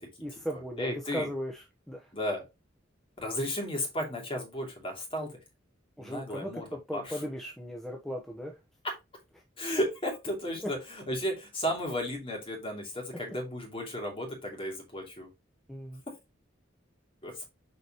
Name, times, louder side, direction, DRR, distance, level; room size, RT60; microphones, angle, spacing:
voice 1, 0.2-2.1 6.0-8.6 15.7-16.0, equal, ahead, 0.9 m, -37 dB
voice 2, 0.8-1.3 2.1-2.4 3.2-5.4 6.0-6.6 6.9-7.0 8.8-8.9 9.6-10.8 11.1-15.3 17.2-17.5, equal, 30° left, 2.7 m, -34 dB
6.8 x 5.2 x 3.0 m
head